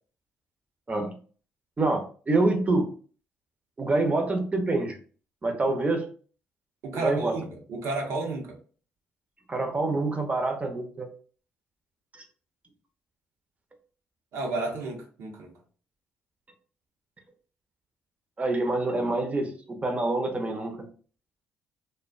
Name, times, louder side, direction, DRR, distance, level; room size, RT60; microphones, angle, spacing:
voice 1, 1.8-2.9 3.8-5.0 5.4-6.1 6.9-7.4 9.5-11.1 12.1-12.2 18.4-20.9, right 2 dB, 25° right, 4 dB, 0.6 m, -26 dB
voice 2, 6.8-8.6 14.3-15.6, right 2 dB, 70° right, 0 dB, 0.8 m, -32 dB
2.4 x 2.2 x 2.3 m, 0.41 s
hypercardioid pair, 55°, 5 cm